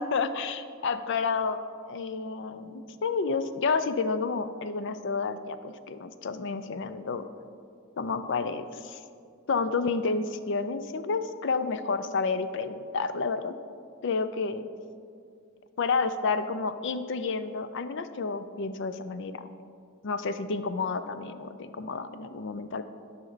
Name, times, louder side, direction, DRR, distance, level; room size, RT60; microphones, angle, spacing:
voice 1, 0.0-1.6 1.9-7.3 8.0-9.0 9.5-13.5 14.0-14.7 15.8-19.5 20.0-22.8, left 4 dB, 55° left, 11 dB, 0.4 m, -30 dB
12.0 x 5.6 x 4.0 m, 2.3 s
head